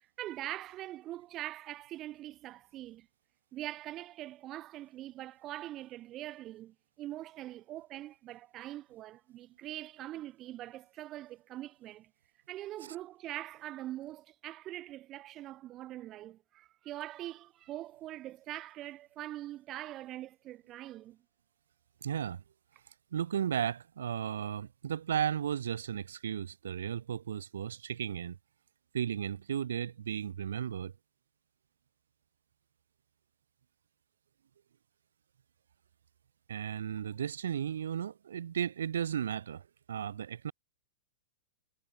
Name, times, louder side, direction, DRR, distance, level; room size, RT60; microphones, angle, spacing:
voice 1, 0.2-3.1 3.5-12.1 12.5-21.2, right 14 dB, 20° right, 0.4 m, -43 dB
voice 2, 22.0-22.4 23.1-28.4 28.9-30.9 36.5-40.5, right 9 dB, 80° right, 0.4 m, -35 dB
hypercardioid pair, 170°, 0 cm